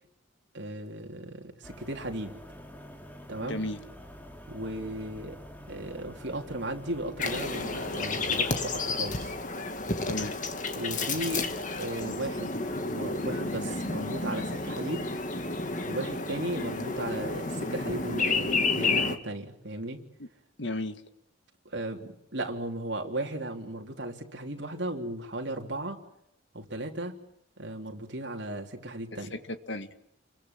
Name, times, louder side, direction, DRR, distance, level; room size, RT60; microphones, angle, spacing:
voice 1, 0.5-2.3 3.3-3.6 4.5-5.4 5.7-9.3 10.7-12.6 12.9-15.1 15.8-20.0 21.7-26.0 26.5-27.1 27.6-29.4, right 1 dB, 60° right, 3 dB, 3.5 m, -36 dB
sound 1, 1.6-8.7, equal, 10° left, 2.9 m, -47 dB
voice 2, 3.4-3.8 6.0-6.1 10.1-10.4 20.2-20.3 20.6-21.0 29.1-30.1, left 1 dB, 65° left, 9 dB, 1.9 m, -35 dB
sound 2, 7.2-19.2, left 3 dB, 40° left, 2.1 m, -31 dB
29.5 x 23.0 x 7.5 m, 0.79 s
head